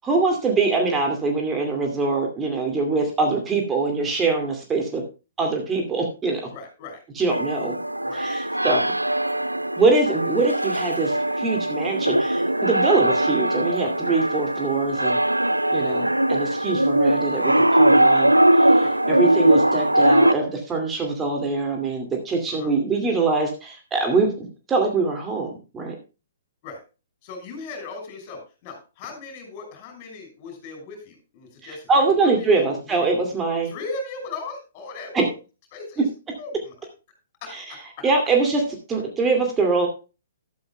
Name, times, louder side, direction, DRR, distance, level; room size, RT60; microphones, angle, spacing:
voice 1, 0.0-5.0 5.4-6.5 7.2-7.8 8.1-8.9 9.8-15.2 15.7-25.9 31.9-33.7 35.1-35.3 37.5-37.6 38.0-38.6 38.9-39.9, right 3 dB, 15° right, 2 dB, 2.3 m, -23 dB
voice 2, 6.5-7.0 8.0-8.3 18.8-19.0 22.5-22.7 26.6-26.8 27.2-31.9 32.2-33.1 33.6-35.3 35.7-36.1 36.4-36.5 37.4-38.1, left 3 dB, 35° left, 5 dB, 6.1 m, -37 dB
sound 1, 7.3-20.3, right 1 dB, 85° right, 0.5 m, -20 dB
14.0 x 12.5 x 2.2 m, 0.31 s
figure-of-eight pair, 120°, 0 cm